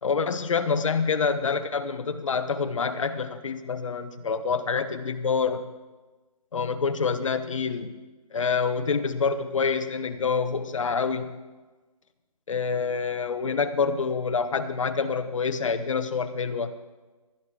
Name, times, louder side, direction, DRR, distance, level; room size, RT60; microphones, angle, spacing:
voice 1, 0.0-5.7 6.5-7.9 8.3-11.4 12.5-16.7, left 5 dB, 55° left, 8 dB, 1.0 m, -27 dB
17.0 x 11.5 x 3.8 m, 1.2 s
hypercardioid pair, 170°, 19 cm